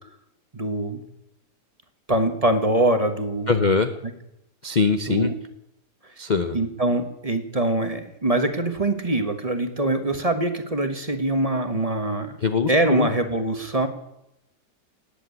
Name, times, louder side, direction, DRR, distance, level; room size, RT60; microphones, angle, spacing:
voice 1, 0.5-1.0 2.1-3.6 5.1-5.3 6.5-12.4 12.7-13.9, right 1 dB, 25° right, 7 dB, 1.3 m, -23 dB
voice 2, 3.5-3.9 4.6-5.3 6.2-6.6 12.4-13.1, left 5 dB, 40° left, 9 dB, 0.6 m, -22 dB
18.5 x 8.5 x 8.4 m, 0.83 s
omnidirectional pair, 1.8 m